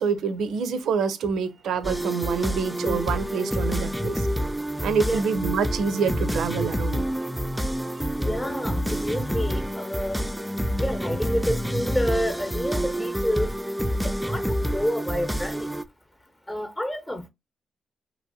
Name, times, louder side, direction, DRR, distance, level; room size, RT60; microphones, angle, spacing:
voice 1, 0.0-4.3 4.8-7.1, right 5 dB, 80° right, 0.4 m, -26 dB
sound 1, 1.8-15.8, equal, 5° right, 0.4 m, -28 dB
voice 2, 8.2-10.3 10.8-13.5 14.0-15.7 16.5-17.3, equal, 15° left, 0.8 m, -29 dB
2.9 x 2.7 x 2.6 m
cardioid pair, 60°, 0 cm